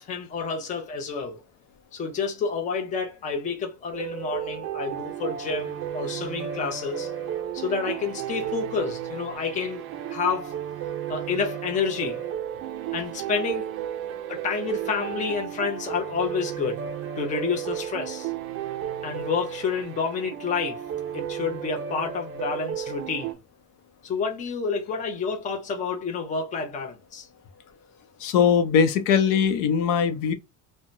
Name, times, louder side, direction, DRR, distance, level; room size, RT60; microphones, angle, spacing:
voice 1, 0.0-1.4 1.9-7.1 7.5-9.8 10.1-10.5 11.1-12.2 12.9-13.7 14.3-16.9 17.2-18.3 19.0-20.8 21.1-23.3 24.0-27.3, left 5 dB, 25° left, 0.6 m, -29 dB
sound 1, 3.9-23.3, right 10 dB, 45° right, 0.4 m, -33 dB
voice 2, 28.2-30.3, left 7 dB, 80° left, 0.7 m, -21 dB
2.7 x 2.2 x 2.5 m
cardioid pair, 170°, 32 cm